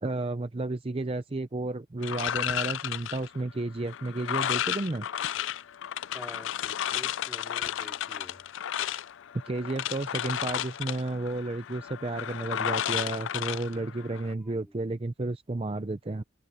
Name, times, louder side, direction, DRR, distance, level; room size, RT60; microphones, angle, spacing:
voice 1, 0.0-5.1 9.4-16.2, right 2 dB, 30° right, 0.5 m, -32 dB
sound 1, 2.0-14.3, left 10 dB, 70° left, 0.4 m, -33 dB
voice 2, 6.1-8.4 14.4-14.7, equal, ahead, 3.7 m, -48 dB
head